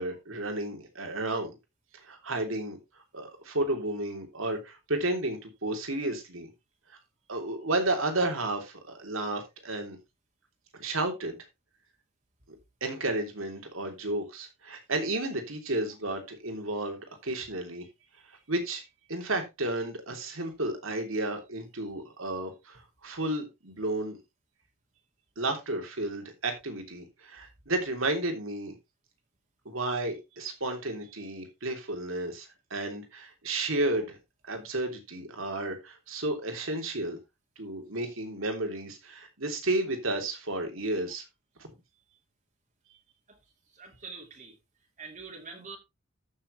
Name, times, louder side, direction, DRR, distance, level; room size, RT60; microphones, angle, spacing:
voice 1, 0.0-1.5 2.0-2.8 3.1-6.5 7.3-10.0 10.7-11.4 12.8-17.8 18.3-18.8 19.1-24.2 25.4-28.7 29.6-34.2 34.5-37.2 37.6-41.2 41.6-41.7, right 2 dB, 70° right, 3.3 m, -32 dB
voice 2, 43.7-44.5 45.0-45.8, right 4 dB, 40° right, 2.5 m, -44 dB
14.0 x 6.7 x 3.3 m
head